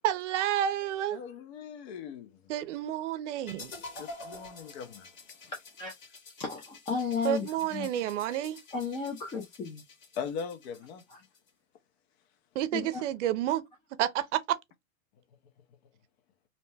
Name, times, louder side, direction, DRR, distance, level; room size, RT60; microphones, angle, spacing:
voice 1, 0.0-1.2 2.5-3.7 7.2-8.6 12.5-13.6 14.0-14.6, right 12 dB, 60° right, 0.6 m, -30 dB
voice 2, 1.1-2.5 4.0-5.1 10.1-11.0, left 6 dB, 50° left, 0.8 m, -40 dB
sound 1, 3.5-11.5, left 3 dB, 70° left, 1.6 m, -49 dB
voice 3, 6.4-7.9 8.7-9.8 11.1-11.2 12.7-13.0, left 5 dB, 15° left, 0.4 m, -34 dB
2.7 x 2.1 x 3.2 m
hypercardioid pair, 125°, 41 cm